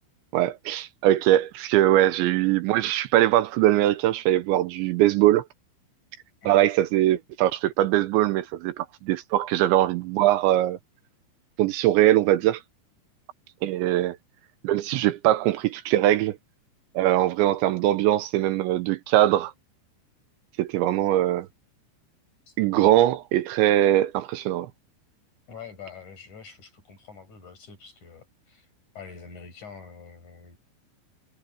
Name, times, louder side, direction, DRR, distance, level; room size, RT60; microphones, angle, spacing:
voice 1, 0.3-5.4 6.5-10.8 11.6-12.6 13.6-14.2 14.6-16.4 17.0-19.5 20.6-21.5 22.6-24.7, right 14 dB, 80° right, 3.0 m, -21 dB
voice 2, 22.5-23.0 25.5-28.7 29.0-30.6, left 6 dB, 40° left, 7.2 m, -45 dB
omnidirectional pair, 5.4 m